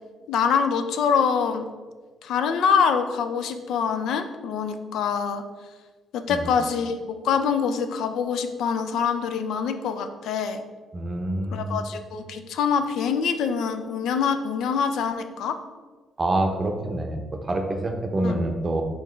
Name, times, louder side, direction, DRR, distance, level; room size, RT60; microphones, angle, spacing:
voice 1, 0.3-1.7 2.2-5.4 6.1-10.6 11.5-15.6 18.2-18.4, left 6 dB, 80° left, 8 dB, 0.3 m, -25 dB
voice 2, 10.9-11.8 16.2-18.8, right 1 dB, 30° right, 4 dB, 0.6 m, -26 dB
3.9 x 3.9 x 3.2 m, 1.4 s
cardioid pair, 90°, 0 cm